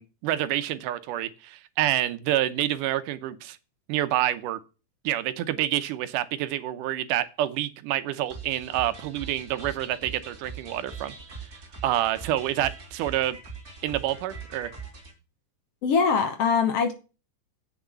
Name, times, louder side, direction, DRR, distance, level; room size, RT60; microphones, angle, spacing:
voice 1, 0.0-3.6 3.9-4.6 5.0-11.1 11.8-13.4 13.8-14.7, right 13 dB, 85° right, 2.4 m, -28 dB
sound 1, 8.3-15.1, right 4 dB, 30° right, 3.0 m, -42 dB
voice 2, 15.8-16.9, left 5 dB, 60° left, 1.8 m, -22 dB
8.3 x 6.5 x 7.0 m
omnidirectional pair, 3.6 m